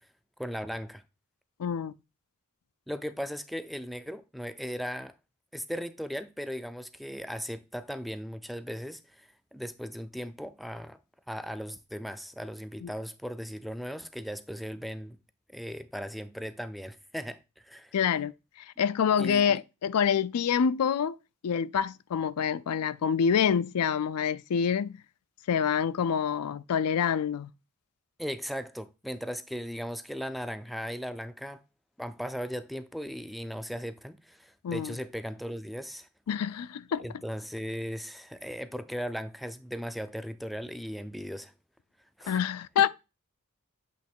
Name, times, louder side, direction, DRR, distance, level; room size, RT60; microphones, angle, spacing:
voice 1, 0.4-1.0 2.9-5.1 5.5-11.0 11.3-15.2 15.5-18.0 19.2-19.6 28.2-31.6 32.0-36.1 37.0-41.5 42.2-42.5, equal, ahead, 0.3 m, -37 dB
voice 2, 1.6-1.9 12.8-12.9 17.9-18.3 18.8-21.2 21.4-25.0 25.5-27.5 34.6-34.9 36.3-37.0 42.3-42.9, left 7 dB, 80° left, 0.4 m, -26 dB
8.2 x 3.0 x 4.3 m
head